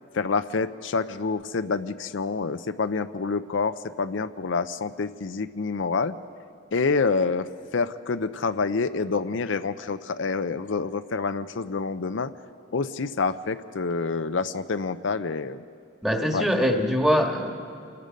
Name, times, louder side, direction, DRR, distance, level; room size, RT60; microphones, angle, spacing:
voice 1, 0.1-6.2 6.7-12.3 12.7-15.6 16.3-16.5, left 4 dB, 70° left, 10 dB, 0.6 m, -27 dB
voice 2, 16.0-17.6, equal, 5° right, 2 dB, 1.5 m, -23 dB
29.0 x 19.0 x 5.2 m, 2.3 s
head